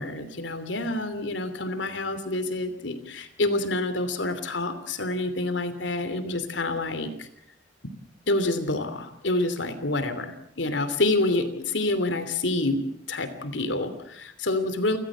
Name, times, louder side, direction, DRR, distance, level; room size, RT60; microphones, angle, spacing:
voice 1, 0.0-7.3 8.3-15.0, left 2 dB, 80° left, 11 dB, 3.0 m, -27 dB
29.5 x 15.5 x 7.3 m, 0.69 s
head